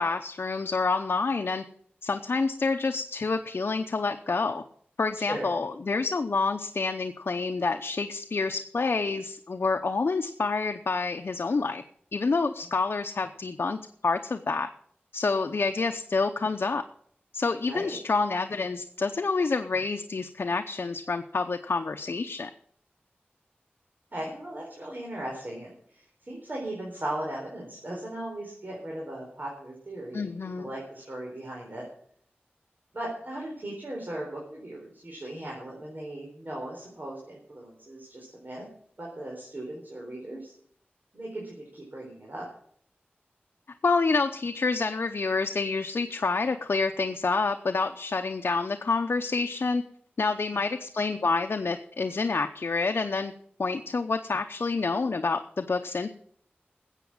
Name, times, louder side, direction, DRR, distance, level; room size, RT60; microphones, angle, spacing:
voice 1, 0.0-1.6 2.0-4.6 5.0-11.8 12.1-13.8 14.0-14.7 15.1-16.8 17.3-22.5 30.1-30.7 43.8-49.8 50.2-53.3 53.6-56.1, left 4 dB, 75° left, 5 dB, 0.7 m, -28 dB
voice 2, 17.7-18.0 24.1-25.7 26.3-30.3 30.6-31.8 32.9-38.6 39.0-40.5 41.1-42.5, right 1 dB, 50° right, -3 dB, 4.1 m, -37 dB
14.0 x 8.3 x 7.2 m, 0.62 s
wide cardioid pair, 75°, 4 cm